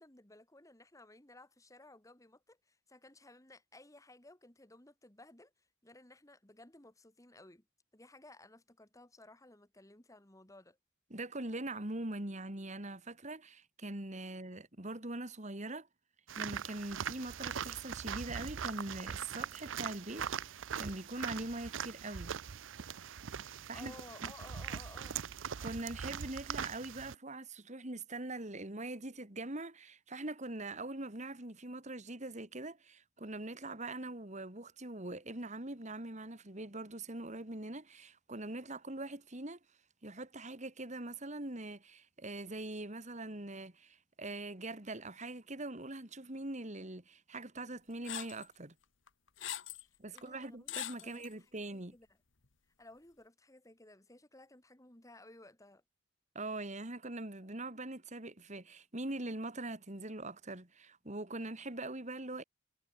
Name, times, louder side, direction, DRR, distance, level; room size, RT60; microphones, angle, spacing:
voice 1, 0.0-7.7 7.9-10.8 23.7-25.2 49.8-52.1 52.8-55.8, left 2 dB, 15° left, 2.1 m, -57 dB
voice 2, 11.1-15.9 16.4-22.4 23.7-23.9 24.2-24.3 25.6-39.6 40.0-48.7 50.0-51.9 56.3-62.4, right 2 dB, 35° right, 2.6 m, -42 dB
sound 1, 16.3-27.1, right 7 dB, 75° right, 0.6 m, -41 dB
sound 2, 48.0-48.4 49.1-49.8 50.2-50.3 50.7-51.3, left 11 dB, 70° left, 1.7 m, -41 dB
head